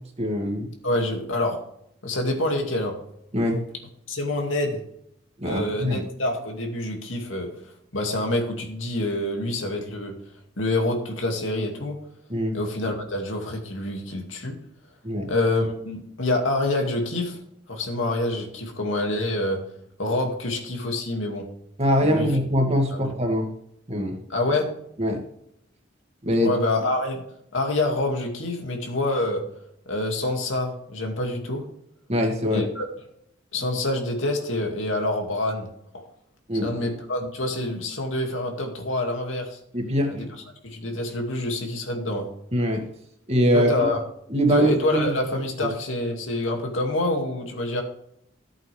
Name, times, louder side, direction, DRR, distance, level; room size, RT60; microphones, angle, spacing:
voice 1, 0.2-0.7 3.3-3.6 5.4-6.0 12.3-12.6 15.0-15.3 21.8-23.5 23.9-24.2 25.0-25.2 26.2-26.5 32.1-32.7 36.5-36.9 39.7-40.3 42.5-42.8 43.3-43.7 44.3-45.1 45.6-45.7, equal, 35° right, 2 dB, 2.2 m, -23 dB
voice 2, 0.8-1.6 2.0-2.9 4.1-4.8 5.4-7.5 7.9-10.2 10.6-12.0 12.5-14.6 15.3-17.4 17.7-19.6 20.0-21.5 22.0-22.3 22.9-23.1 24.3-24.7 26.4-27.2 27.5-29.4 29.9-31.6 32.5-32.9 33.5-35.7 35.9-36.1 36.6-39.6 40.1-40.3 40.6-42.3 43.5-44.0 44.5-47.8, left 2 dB, 90° left, 2 dB, 2.4 m, -26 dB
14.0 x 8.1 x 3.5 m, 0.72 s
head